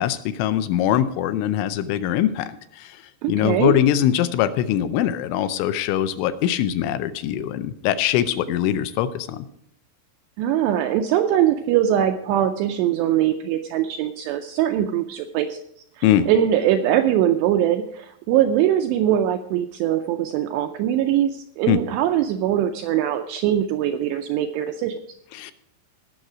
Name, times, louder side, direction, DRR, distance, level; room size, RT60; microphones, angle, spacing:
voice 1, 0.0-3.0 3.3-9.4 16.0-16.3 21.7-21.8 25.3-25.5, left 11 dB, 80° left, 11 dB, 3.0 m, -22 dB
voice 2, 3.2-3.8 10.4-15.6 16.0-25.2, right 11 dB, 85° right, 6 dB, 2.5 m, -22 dB
18.0 x 6.5 x 4.9 m, 0.71 s
omnidirectional pair, 5.6 m